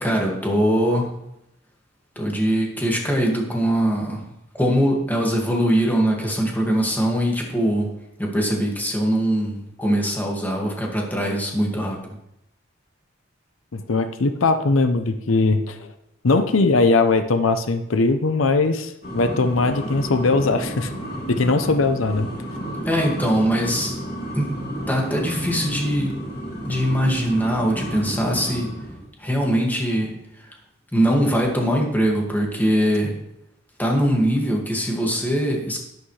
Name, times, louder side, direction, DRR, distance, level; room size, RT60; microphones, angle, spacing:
voice 1, 0.0-1.1 2.2-4.2 4.6-7.9 8.2-12.0 22.9-24.0 24.3-24.5 24.9-26.1 26.7-28.7 29.2-30.2 30.9-33.1 33.8-35.8, equal, 10° left, -1 dB, 2.1 m, -22 dB
voice 2, 13.7-15.9 16.2-20.9 21.3-22.3, left 3 dB, 85° left, 9 dB, 0.7 m, -20 dB
sound 1, 19.0-29.1, equal, 55° left, 2.6 m, -32 dB
11.0 x 10.5 x 3.3 m, 0.81 s
head